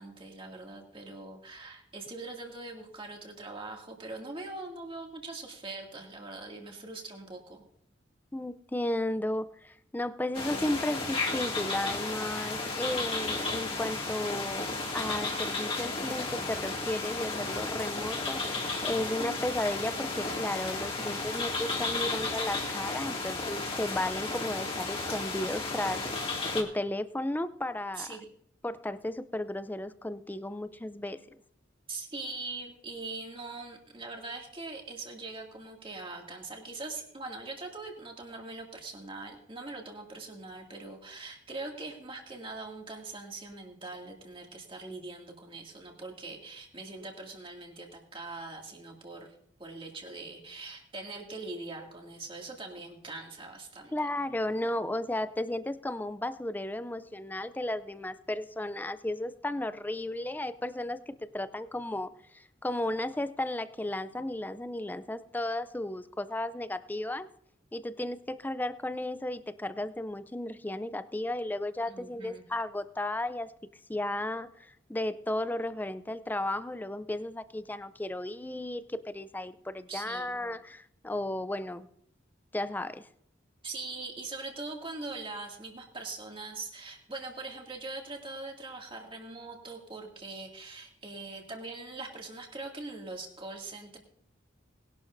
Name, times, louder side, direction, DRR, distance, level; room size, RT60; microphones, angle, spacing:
voice 1, 0.0-7.6 19.0-19.4 28.0-28.3 31.9-49.3 49.6-54.1 71.9-72.4 79.9-80.3 83.6-94.0, right 3 dB, 30° right, 1 dB, 2.3 m, -42 dB
voice 2, 8.3-14.7 14.9-28.2 28.6-31.2 53.9-67.3 67.7-73.5 73.9-81.9 82.5-83.1, left 1 dB, 10° left, 13 dB, 0.4 m, -34 dB
sound 1, 10.3-26.6, left 3 dB, 30° left, 2.2 m, -33 dB
20.0 x 11.5 x 2.6 m, 0.71 s
head